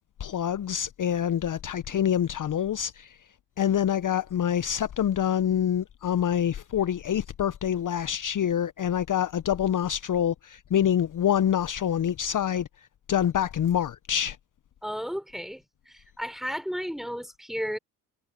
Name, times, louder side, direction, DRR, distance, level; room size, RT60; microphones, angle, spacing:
voice 1, 0.2-3.2 3.6-12.7 13.1-14.4, left 9 dB, 40° left, 1.1 m, -26 dB
voice 2, 14.8-17.8, equal, ahead, 4.8 m, -34 dB
hypercardioid pair, 50°, 49 cm